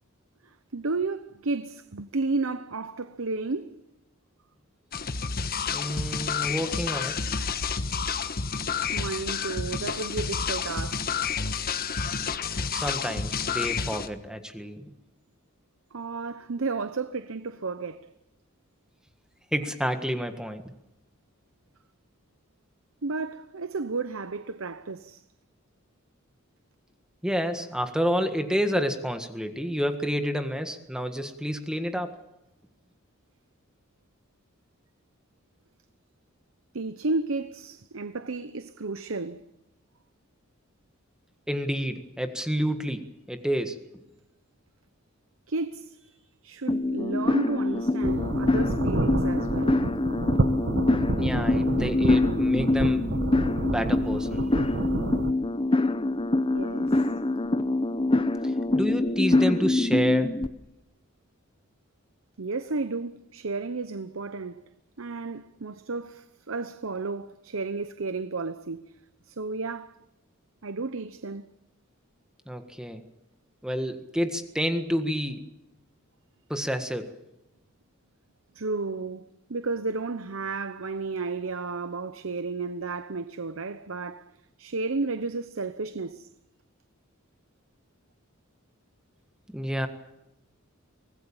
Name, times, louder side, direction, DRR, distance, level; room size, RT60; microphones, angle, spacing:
voice 1, 0.4-3.8 8.2-8.4 8.9-11.1 15.9-18.1 23.0-25.2 36.7-39.4 45.5-46.1 46.4-49.8 56.5-57.0 62.4-64.6 65.0-68.8 69.3-70.0 70.6-71.5 78.5-84.3 84.6-86.3, right 3 dB, 75° right, 0.9 m, -32 dB
sound 1, 4.9-14.1, left 5 dB, 45° left, 1.4 m, -30 dB
voice 2, 5.7-7.2 12.7-14.9 19.5-20.7 27.2-32.2 41.5-43.8 51.2-53.2 53.7-54.8 58.4-60.3 72.5-73.0 73.6-75.5 76.5-77.1 89.5-89.9, equal, 5° right, 1.6 m, -29 dB
sound 2, 46.7-60.5, left 2 dB, 25° left, 1.0 m, -25 dB
sound 3, 48.0-55.3, right 2 dB, 55° right, 1.2 m, -29 dB
25.0 x 19.0 x 7.2 m
head